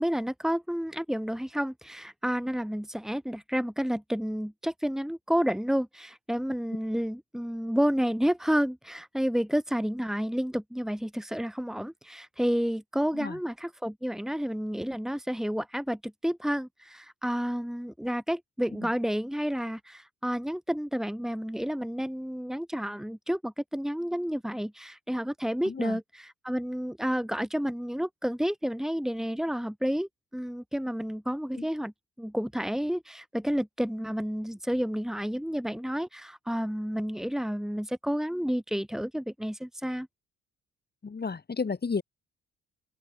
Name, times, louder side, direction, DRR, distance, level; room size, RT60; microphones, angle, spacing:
voice 1, 0.0-31.9 32.2-40.1, equal, ahead, 5.5 m, -30 dB
voice 2, 25.7-26.0 31.6-31.7 41.0-42.0, left 5 dB, 35° left, 7.0 m, -32 dB
open air
cardioid pair, 90°, 30 cm